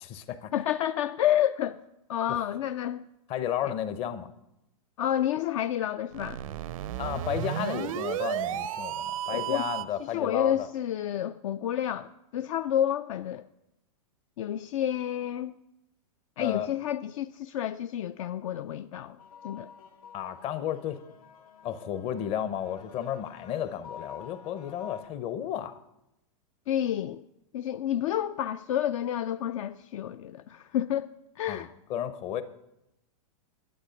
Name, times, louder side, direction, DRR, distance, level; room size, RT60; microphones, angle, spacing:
voice 1, 0.0-0.5 2.3-2.4 3.3-4.3 7.0-10.7 16.4-16.7 20.1-21.0 21.6-25.8 31.5-32.4, left 10 dB, 35° left, 0.7 m, -33 dB
voice 2, 0.5-1.8 2.1-3.0 5.0-6.4 9.3-9.7 10.1-13.4 14.4-15.5 16.4-19.2 19.4-19.7 26.7-27.2 27.5-31.1 31.4-31.7, left 11 dB, 65° left, 0.4 m, -29 dB
sound 1, 6.1-10.0, right 12 dB, 65° right, 0.5 m, -33 dB
sound 2, 19.2-25.1, left 7 dB, 80° left, 1.2 m, -49 dB
11.0 x 8.3 x 5.1 m
hypercardioid pair, 135°, 18 cm